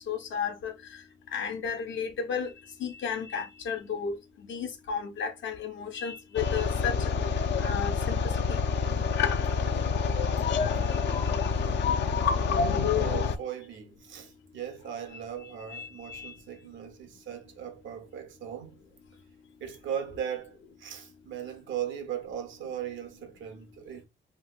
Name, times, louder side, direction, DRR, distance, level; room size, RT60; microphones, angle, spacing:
voice 1, 0.1-0.7 1.3-2.5 2.8-4.1 4.5-6.9 7.6-8.3 15.7-16.3, left 6 dB, 80° left, 0.9 m, -33 dB
sound 1, 6.4-13.4, left 5 dB, 65° left, 0.5 m, -27 dB
voice 2, 11.9-18.8 19.6-24.1, right 9 dB, 90° right, 0.9 m, -38 dB
3.1 x 3.0 x 2.3 m
cardioid pair, 130°, 19 cm